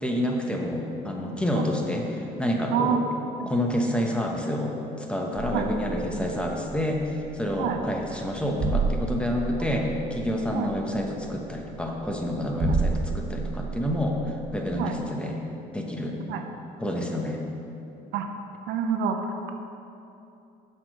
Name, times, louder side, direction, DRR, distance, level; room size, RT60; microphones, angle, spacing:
voice 1, 0.0-3.1 3.4-15.4 15.7-16.2 16.8-17.4, left 1 dB, 5° left, 0 dB, 1.0 m, -28 dB
voice 2, 2.7-3.1 3.4-3.5 5.5-5.7 7.6-7.8 10.5-10.7 14.7-15.0 16.3-16.4 18.1-18.3 18.7-19.3, right 7 dB, 85° right, 5 dB, 0.7 m, -27 dB
sound 1, 5.4-15.0, right 4 dB, 60° right, 1.8 m, -32 dB
7.3 x 5.1 x 6.4 m, 2.7 s
cardioid pair, 110°, 17 cm